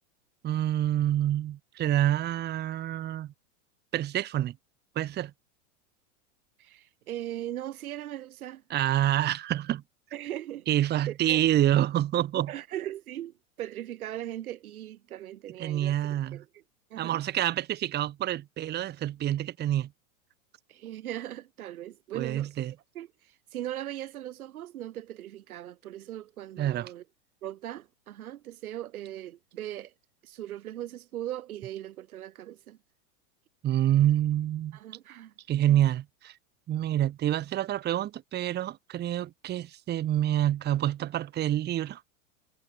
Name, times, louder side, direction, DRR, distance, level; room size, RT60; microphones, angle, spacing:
voice 1, 0.4-3.3 3.9-4.5 5.0-5.3 8.7-9.8 10.7-12.5 15.6-16.4 17.0-19.9 22.1-22.7 26.6-26.9 33.6-34.8 35.5-36.3 36.7-42.0, right 12 dB, 25° right, 1.1 m, -27 dB
voice 2, 6.6-8.6 10.1-11.4 12.5-16.6 16.9-17.2 20.7-22.6 22.9-27.0 27.4-29.9 30.2-32.8 34.7-35.8, right 12 dB, 85° right, 1.7 m, -39 dB
supercardioid pair, 130°, 42 cm